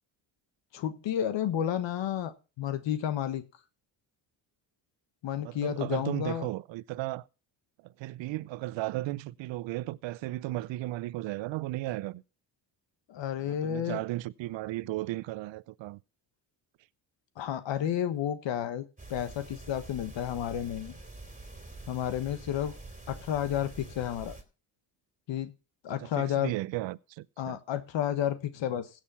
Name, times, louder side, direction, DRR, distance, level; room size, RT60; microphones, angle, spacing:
voice 1, 0.7-3.4 5.2-6.5 13.1-14.0 17.4-18.8 19.1-21.0 21.9-22.7 23.1-24.4 25.3-25.5 25.8-26.5 27.4-28.9, left 10 dB, 70° left, 1.5 m, -31 dB
voice 2, 5.4-7.3 7.8-12.2 13.4-16.0 26.0-27.6, right 17 dB, 70° right, 0.6 m, -35 dB
sound 1, 19.0-24.4, right 2 dB, 15° right, 2.9 m, -46 dB
16.0 x 6.6 x 5.6 m
cardioid pair, 80°, 46 cm